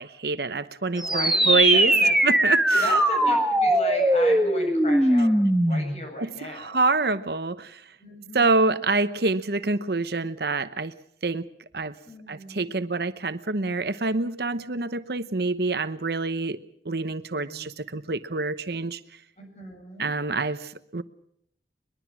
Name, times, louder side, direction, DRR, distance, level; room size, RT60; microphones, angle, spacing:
voice 1, 0.0-1.9 2.2-3.0 6.2-7.8 8.3-10.9 11.2-11.5 11.7-11.9 12.3-16.6 16.8-19.0 20.0-21.0, right 3 dB, 65° right, 12 dB, 0.9 m, -26 dB
voice 2, 0.8-2.1 2.8-6.8 8.0-8.8 12.1-12.8 17.4-17.7 19.4-20.2, left 1 dB, 35° left, 2 dB, 8.0 m, -36 dB
sound 1, 1.0-6.0, right 1 dB, 5° right, 1.5 m, -20 dB
22.5 x 22.0 x 6.2 m, 0.70 s
head